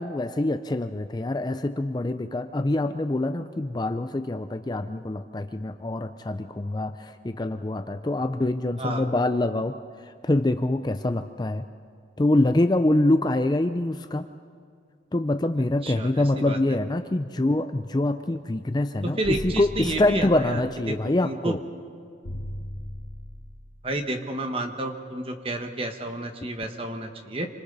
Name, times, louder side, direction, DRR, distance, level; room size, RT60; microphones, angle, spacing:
voice 1, 0.0-9.8 10.0-11.7 12.2-14.3 15.1-21.6, left 1 dB, 20° left, 9 dB, 0.4 m, -25 dB
voice 2, 15.8-16.6 19.0-20.6 20.9-21.0 21.2-21.6 23.8-27.5, right 1 dB, 30° right, 5 dB, 1.4 m, -30 dB
sound 1, 19.2-20.7 22.2-23.7, left 1 dB, 85° left, 1.8 m, -37 dB
27.5 x 25.5 x 4.1 m, 2.3 s
head